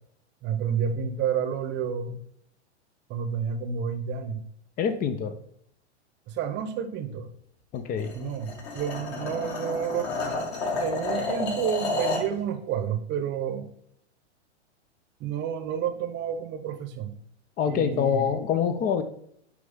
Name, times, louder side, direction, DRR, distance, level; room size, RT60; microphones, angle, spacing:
voice 1, 0.4-2.2 3.1-4.4 6.3-7.3 8.1-10.1 10.8-13.7 15.2-17.1 17.7-18.3, right 7 dB, 30° right, 8 dB, 0.9 m, -30 dB
voice 2, 4.8-5.3 7.7-8.1 17.6-19.0, left 7 dB, 25° left, 11 dB, 0.6 m, -25 dB
sound 1, 8.0-12.3, left 3 dB, 45° left, 2.2 m, -30 dB
9.2 x 3.3 x 3.6 m, 0.69 s
hypercardioid pair, 110°, 35 cm